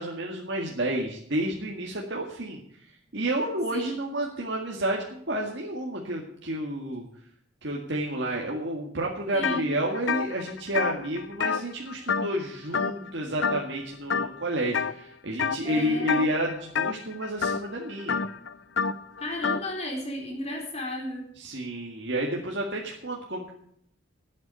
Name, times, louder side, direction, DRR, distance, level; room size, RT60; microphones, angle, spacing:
voice 1, 0.0-2.6 3.1-7.1 7.6-18.2 21.4-23.5, right 1 dB, 60° right, -1 dB, 2.0 m, -30 dB
voice 2, 9.3-9.7 15.6-16.2 19.2-21.3, left 1 dB, 35° left, 1 dB, 4.0 m, -34 dB
sound 1, 9.4-9.6 9.9-12.5 12.7-13.1 13.4-13.8 14.1-14.9 15.4-15.7 16.0-19.7, left 6 dB, 65° left, 0.6 m, -28 dB
12.0 x 8.6 x 8.3 m, 0.67 s
head